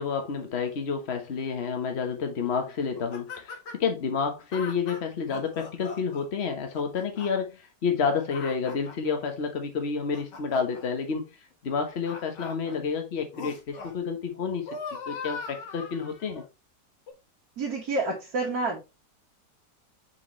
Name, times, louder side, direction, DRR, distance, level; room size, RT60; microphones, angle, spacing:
voice 1, 0.0-11.3 11.6-14.8 15.1-16.4, left 5 dB, 40° left, 1.4 m, -29 dB
sound 1, 2.9-3.9 4.5-6.3 6.7-7.3 7.8-9.1 9.8-10.8 11.7-12.8 13.3-14.0 14.3-16.4 17.1-17.2, left 4 dB, 75° left, 2.1 m, -40 dB
voice 2, 17.6-18.8, right 3 dB, 60° right, 2.3 m, -28 dB
6.7 x 4.8 x 3.1 m
omnidirectional pair, 1.9 m